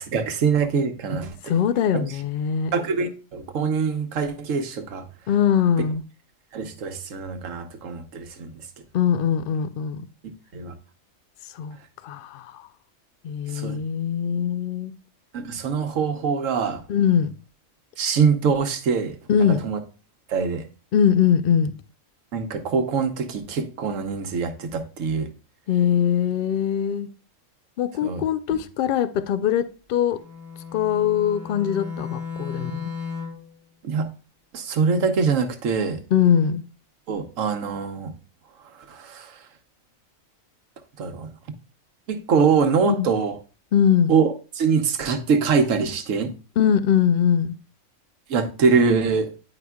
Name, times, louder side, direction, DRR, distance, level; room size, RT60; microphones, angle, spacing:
voice 1, 0.0-1.5 1.9-2.0 2.7-5.1 6.5-8.5 10.5-10.7 13.5-13.8 15.3-16.8 18.0-19.2 19.6-19.8 20.3-20.6 22.3-25.3 28.0-28.2 33.8-34.1 34.5-36.0 37.1-38.1 38.9-39.3 41.0-41.3 42.1-43.4 44.1-46.3 48.3-49.3, right 5 dB, 80° right, 1.2 m, -23 dB
voice 2, 1.5-2.7 5.3-6.0 8.9-10.1 11.5-11.8 12.0-12.7 13.2-14.9 16.9-17.3 19.3-19.6 20.9-21.7 25.7-27.1 27.8-30.2 30.7-32.9 36.1-36.6 42.8-43.1 43.7-44.1 46.6-47.6, left 8 dB, 65° left, 0.5 m, -21 dB
Bowed string instrument, 30.1-33.5, left 5 dB, 45° left, 2.9 m, -34 dB
9.7 x 4.9 x 2.3 m
omnidirectional pair, 1.4 m